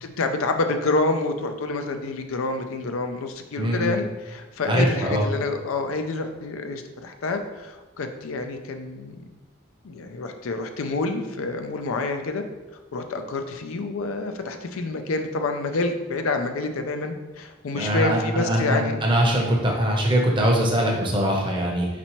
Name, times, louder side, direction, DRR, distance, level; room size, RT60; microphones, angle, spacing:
voice 1, 0.0-9.2 9.8-12.4 12.9-19.0, left 3 dB, 85° left, 6 dB, 0.5 m, -28 dB
voice 2, 3.6-3.9 4.7-5.2 17.7-21.9, equal, 25° right, -1 dB, 0.7 m, -22 dB
4.3 x 4.2 x 3.0 m, 1.1 s
head